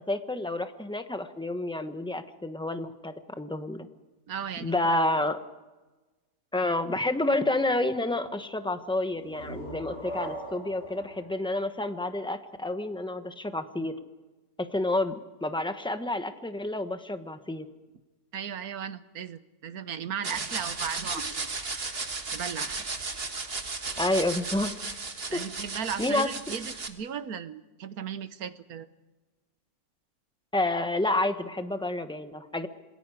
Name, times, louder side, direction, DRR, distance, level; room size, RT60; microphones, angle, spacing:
voice 1, 0.1-3.9 4.6-5.4 6.5-13.9 14.6-15.1 15.4-17.7 24.0-24.7 25.3-25.4 26.0-26.3 30.5-32.7, left 2 dB, 5° left, 8 dB, 1.0 m, -29 dB
voice 2, 4.3-5.0 18.3-21.5 22.3-22.8 25.3-28.9, right 7 dB, 70° right, 13 dB, 1.5 m, -36 dB
sound 1, 9.1-12.6, equal, 45° left, 7.6 m, -41 dB
sound 2, 20.2-26.9, right 3 dB, 40° right, 1.8 m, -35 dB
27.5 x 20.0 x 4.9 m, 1.2 s
omnidirectional pair, 1.6 m